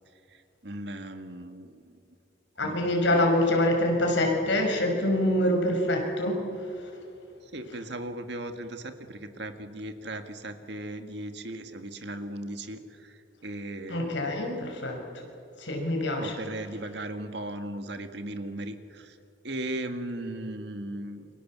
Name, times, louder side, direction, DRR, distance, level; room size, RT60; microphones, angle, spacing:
voice 1, 0.3-2.0 2.6-3.2 7.4-14.3 16.2-19.2 19.4-21.3, right 1 dB, 60° right, 7 dB, 1.9 m, -37 dB
voice 2, 2.6-6.9 13.9-15.0 15.6-16.3, left 1 dB, 70° left, 1 dB, 5.8 m, -25 dB
29.0 x 24.5 x 7.5 m, 2.6 s
head